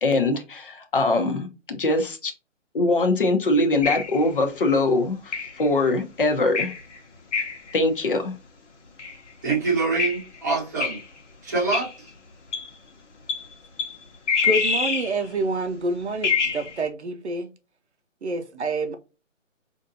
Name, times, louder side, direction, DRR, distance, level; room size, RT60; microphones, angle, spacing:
voice 1, 0.0-2.3 2.7-6.7 7.7-8.3, left 2 dB, 45° left, 0.8 m, -22 dB
sound 1, 3.8-4.3 5.3-5.7 6.5-7.0 7.3-7.7 9.0-9.1 10.0-10.2 10.8-11.0 11.7-11.9 12.5-12.7 13.3-13.5 13.8-14.0 14.3-15.2 16.2-16.8, left 6 dB, 65° left, 1.1 m, -25 dB
voice 2, 9.4-11.0 11.4-11.9 18.5-18.6, right 4 dB, 15° right, 0.9 m, -25 dB
voice 3, 14.4-17.5 18.2-19.0, right 2 dB, 60° right, 0.6 m, -27 dB
5.0 x 2.6 x 2.7 m
hypercardioid pair, 165°, 38 cm